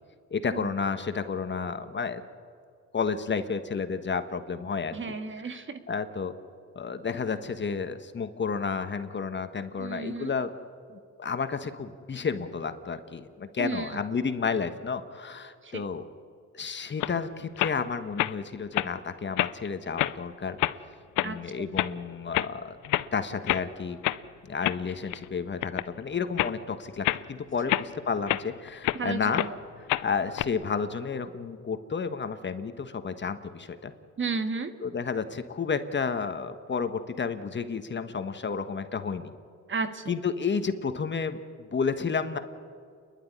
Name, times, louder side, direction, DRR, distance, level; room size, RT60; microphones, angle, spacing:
voice 1, 0.3-2.2 2.9-5.1 5.4-5.6 5.9-6.4 6.7-10.5 10.9-16.0 16.5-20.6 21.2-22.8 23.1-24.0 24.4-29.4 30.0-33.9 34.8-39.3 40.1-42.4, left 5 dB, 35° left, 9 dB, 1.4 m, -31 dB
voice 2, 4.9-5.8 9.8-10.4 13.6-13.9 15.6-15.8 21.2-21.4 28.9-29.5 34.2-34.8 39.7-40.1, right 4 dB, 40° right, 8 dB, 1.8 m, -33 dB
sound 1, 17.0-17.2 17.6-17.8 18.2-18.3 18.7-18.9 19.4-19.7 20.0-20.2 20.6-20.8 21.2-21.3 21.8-21.9 22.3-22.5 22.8-23.1 23.5-23.7 24.0-24.2 24.6-25.3 25.6-25.9 26.4-26.6 27.0-27.3 27.7-29.0 29.3-29.5 29.9-30.5, left 16 dB, 85° left, 0.7 m, -27 dB
29.5 x 11.5 x 9.8 m, 2.3 s
cardioid pair, 90°, 30 cm